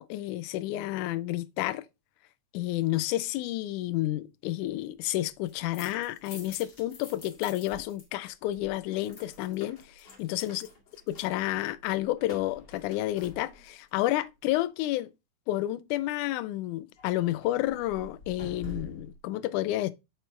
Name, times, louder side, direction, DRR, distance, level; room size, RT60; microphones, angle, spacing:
voice 1, 0.0-1.8 2.5-10.7 11.1-15.1 15.5-19.9, left 15 dB, 80° left, 2.0 m, -30 dB
sound 1, 5.3-8.1 8.3-13.9 17.0-19.2, left 1 dB, 40° left, 2.2 m, -48 dB
6.8 x 4.5 x 4.3 m
omnidirectional pair, 3.6 m